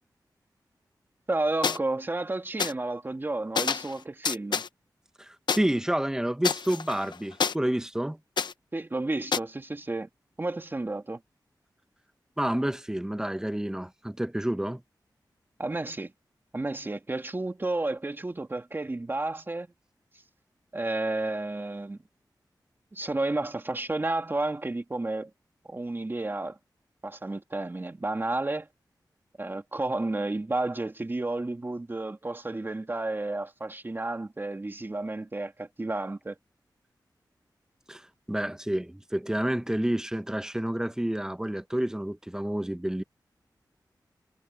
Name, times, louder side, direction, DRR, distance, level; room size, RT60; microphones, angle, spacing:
voice 1, 1.3-4.6 8.7-10.1 10.4-11.2 15.6-16.1 16.5-19.7 20.7-22.0 22.9-25.3 25.7-26.6 27.0-28.7 29.4-36.3, right 2 dB, 30° right, 2.9 m, -31 dB
sound 1, 1.6-1.8 2.6-2.7 3.6-3.9 4.2-4.7 5.5-5.6 6.4-7.5 8.4-8.5 9.3-9.4, left 6 dB, 80° left, 0.8 m, -27 dB
voice 2, 5.2-8.2 12.4-14.8 37.9-43.0, right 1 dB, 10° right, 1.2 m, -29 dB
wide cardioid pair, 90°, 8 cm